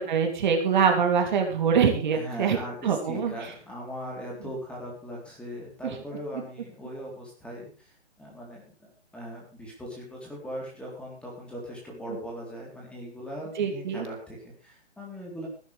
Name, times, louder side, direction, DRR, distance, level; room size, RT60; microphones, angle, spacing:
voice 1, 0.1-2.6 2.8-3.3 5.8-5.9 6.3-6.4 13.6-14.1, right 6 dB, 45° right, 3 dB, 3.1 m, -24 dB
voice 2, 2.1-15.5, equal, 5° left, -3 dB, 3.7 m, -39 dB
16.5 x 12.5 x 3.4 m, 0.38 s
hypercardioid pair, 150°, 34 cm